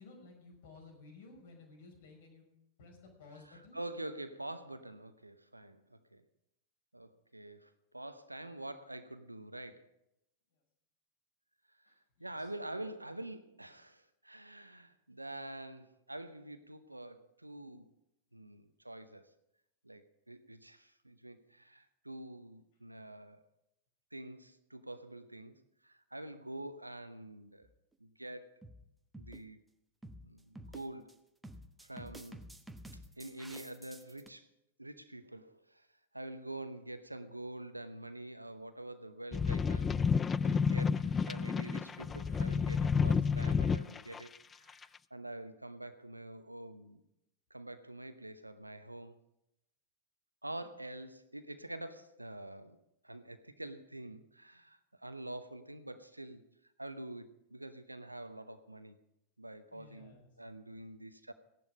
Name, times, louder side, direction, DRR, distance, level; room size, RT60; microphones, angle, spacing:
voice 1, 0.0-2.5 2.8-3.8 10.5-10.6 11.9-12.5 50.5-50.8 59.7-60.3, left 3 dB, 55° left, 2 dB, 5.0 m, -56 dB
voice 2, 3.5-6.2 6.9-9.9 11.7-11.9 12.2-17.9 18.3-19.3 19.8-23.4 24.1-25.6 25.8-27.7 28.0-28.5 29.2-29.6 30.2-31.1 31.8-32.4 33.2-34.5 34.8-35.9 36.1-39.9 40.4-44.3 44.6-44.8 45.1-47.0 47.5-49.2 50.4-52.8 53.0-56.5 56.8-59.0 59.4-61.3, right 1 dB, 85° right, 11 dB, 0.8 m, -46 dB
sound 1, 27.6-27.9 28.6-28.8 29.1-29.4 30.0-30.3 30.6-31.1 31.4-34.3, right 1 dB, 5° right, 1.0 m, -50 dB
sound 2, 39.3-44.2 44.8-44.9, left 6 dB, 20° left, 0.4 m, -30 dB
16.0 x 11.0 x 5.2 m, 0.84 s
figure-of-eight pair, 90°, 0 cm